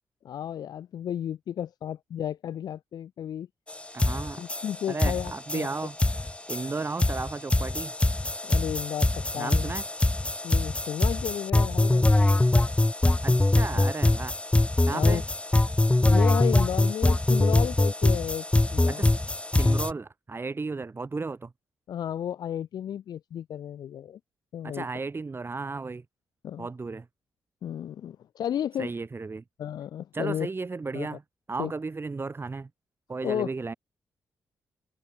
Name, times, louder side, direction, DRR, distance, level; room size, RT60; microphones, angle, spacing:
voice 1, 0.2-3.5 4.4-5.7 8.4-9.7 10.4-12.7 13.7-13.8 14.9-15.2 16.0-18.5 18.7-19.1 21.9-24.2 24.5-24.9 26.4-26.7 27.6-28.9 29.6-30.5 30.9-31.2 31.6-31.7 33.2-33.5, left 10 dB, 70° left, 1.6 m, -33 dB
sound 1, 3.7-3.8 4.0-19.9, left 2 dB, 15° left, 1.0 m, -23 dB
voice 2, 3.9-4.4 4.9-6.0 6.5-7.9 9.4-9.8 13.2-14.4 14.9-15.2 18.9-19.2 19.5-21.5 24.6-26.0 26.6-27.1 28.8-29.4 30.1-31.2 31.5-32.7 33.1-33.7, right 4 dB, 35° right, 1.3 m, -34 dB
supercardioid pair, 45°, 7 cm